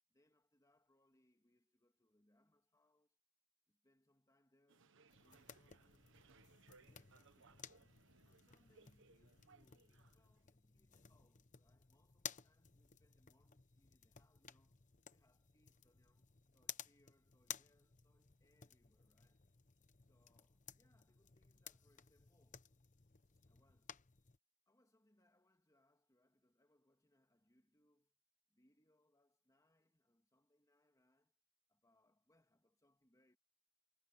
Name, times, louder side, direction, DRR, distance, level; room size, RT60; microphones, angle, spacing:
voice 1, 0.1-3.2 3.7-6.2 6.8-19.4 20.0-22.7 23.4-24.1 24.7-28.1 28.5-31.4 31.7-33.4, left 1 dB, 15° left, 2.9 m, -78 dB
sound 1, 4.7-10.4, right 4 dB, 60° right, 1.2 m, -69 dB
sound 2, 5.1-24.4, left 9 dB, 35° left, 1.0 m, -57 dB
head